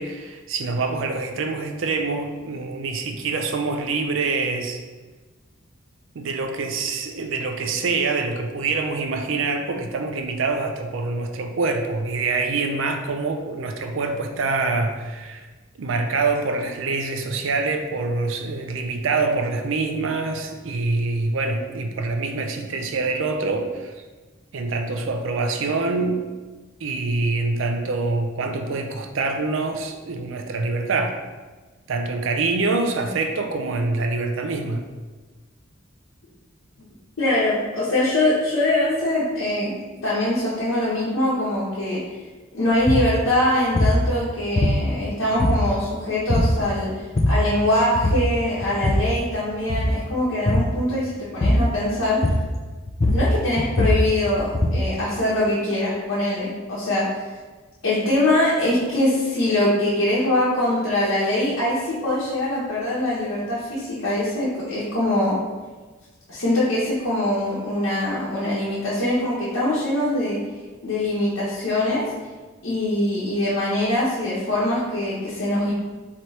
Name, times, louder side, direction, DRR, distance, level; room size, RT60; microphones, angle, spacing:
voice 1, 0.0-4.8 6.1-15.5 15.8-24.0 24.5-26.2 26.8-31.2 31.9-34.9, right 3 dB, 70° right, 4 dB, 0.4 m, -25 dB
voice 2, 37.2-42.0 42.5-46.9 47.3-52.3 53.1-57.1 57.8-65.4 66.3-70.4 70.8-72.1 72.6-75.7, left 1 dB, 85° left, -9 dB, 1.0 m, -23 dB
sound 1, 42.8-43.1 43.7-44.0 44.5-45.1 45.4-45.9 46.3-46.6 47.0-47.5 47.9-48.3 48.6-49.2 49.6-50.0 50.4-50.8 51.4-51.7 52.2-52.6 52.9-54.9, left 1 dB, 30° left, 0.4 m, -21 dB
3.2 x 3.0 x 4.0 m, 1.3 s
head